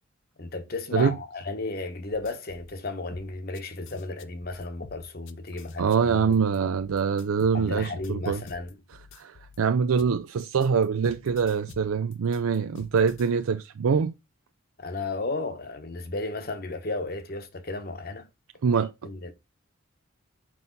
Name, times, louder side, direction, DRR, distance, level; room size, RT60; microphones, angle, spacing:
voice 1, 0.4-5.8 6.1-6.4 7.5-8.8 14.8-18.3 19.0-19.3, left 3 dB, 45° left, 1.0 m, -34 dB
sound 1, 2.1-2.7 3.1-9.6 10.0-13.3, left 4 dB, 60° left, 0.6 m, -48 dB
voice 2, 5.8-8.4 9.1-14.1 18.6-18.9, right 6 dB, 85° right, 0.4 m, -24 dB
6.2 x 5.4 x 3.7 m
head